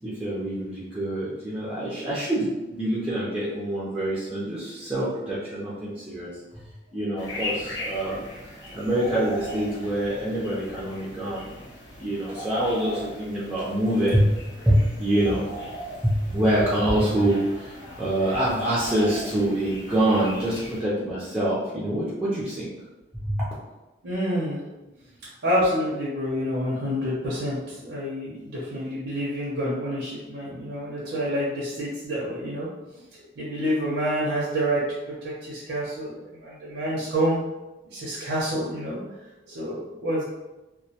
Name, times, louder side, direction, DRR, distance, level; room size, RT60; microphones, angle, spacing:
voice 1, 0.0-6.4 6.9-8.2 8.7-11.5 12.0-15.5 16.0-22.7 23.2-23.5, right 1 dB, 5° right, -9 dB, 0.4 m, -25 dB
sound 1, 7.2-20.8, left 1 dB, 70° left, 0.6 m, -39 dB
voice 2, 24.0-24.6 25.4-32.7 33.1-34.8 35.1-37.4 37.9-39.0 39.5-40.2, equal, 80° right, -7 dB, 0.6 m, -28 dB
2.2 x 2.1 x 2.7 m, 1.0 s
head